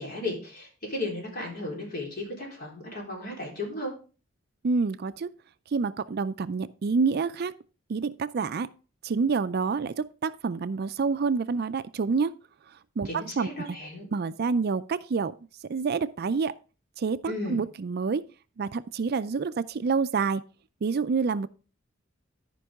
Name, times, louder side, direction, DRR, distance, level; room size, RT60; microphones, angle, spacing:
voice 1, 0.0-3.9 13.0-14.1 17.3-17.6, left 2 dB, 50° left, 3.9 m, -35 dB
voice 2, 4.6-5.3 5.7-7.5 7.9-8.7 9.0-12.3 13.0-13.5 14.1-15.3 15.7-16.5 17.0-18.2 18.6-20.4 20.8-21.5, right 5 dB, 55° right, 0.4 m, -27 dB
13.0 x 5.3 x 3.6 m
head